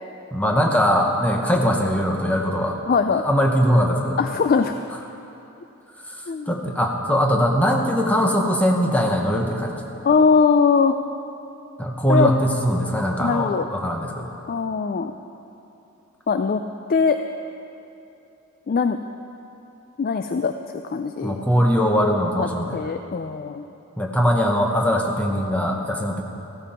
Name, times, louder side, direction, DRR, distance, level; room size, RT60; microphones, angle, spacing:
voice 1, 0.3-2.8 3.1-4.2 6.5-9.8 11.8-14.3 21.2-22.8 24.0-26.2, equal, 5° left, 1 dB, 1.0 m, -21 dB
voice 2, 2.9-3.2 4.2-4.7 6.3-6.5 10.0-11.0 12.1-12.3 13.2-13.7 14.5-15.1 16.3-16.6 16.9-17.2 18.7-19.0 20.0-20.5 20.8-21.3 22.4-23.6, left 5 dB, 40° left, 8 dB, 0.3 m, -20 dB
14.0 x 14.0 x 4.4 m, 2.9 s
head